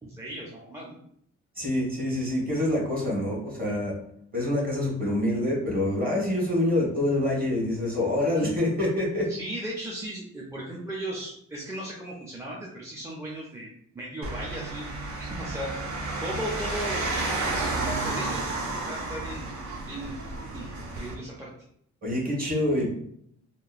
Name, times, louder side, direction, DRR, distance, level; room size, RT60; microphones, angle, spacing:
voice 1, 0.0-1.0 9.3-14.9 15.2-15.7 16.2-17.1 17.4-18.5 18.9-19.5 19.9-20.2 20.5-21.5, right 1 dB, 10° right, -4 dB, 0.4 m, -36 dB
voice 2, 1.6-3.9 4.3-9.3 22.0-22.9, left 1 dB, 30° right, -3 dB, 1.2 m, -26 dB
sound 1, 14.2-21.1, right 2 dB, 70° right, 0.7 m, -31 dB
2.9 x 2.3 x 2.4 m, 0.70 s
cardioid pair, 90°, 30 cm